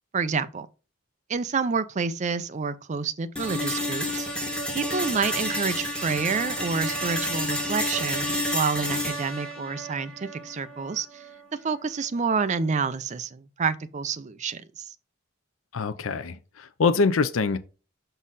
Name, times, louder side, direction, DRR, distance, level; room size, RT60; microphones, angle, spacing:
voice 1, 0.1-0.7 1.3-4.3 4.7-11.2 11.6-14.9, right 5 dB, 35° right, 0.5 m, -28 dB
sound 1, 3.4-11.4, equal, 5° left, 1.4 m, -30 dB
voice 2, 15.7-17.6, left 4 dB, 85° left, 0.5 m, -24 dB
6.1 x 3.9 x 4.0 m
head